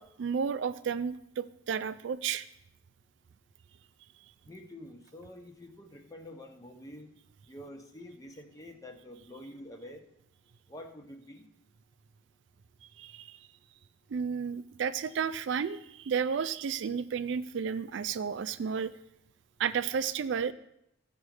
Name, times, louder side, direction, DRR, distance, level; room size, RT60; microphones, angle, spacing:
voice 1, 0.0-2.5 13.0-13.3 14.1-18.9 19.6-20.5, right 6 dB, 60° right, 13 dB, 0.4 m, -32 dB
voice 2, 4.4-7.1 7.5-10.0 10.7-11.4, left 1 dB, 15° left, 4 dB, 1.0 m, -47 dB
15.0 x 5.2 x 4.8 m, 0.79 s
head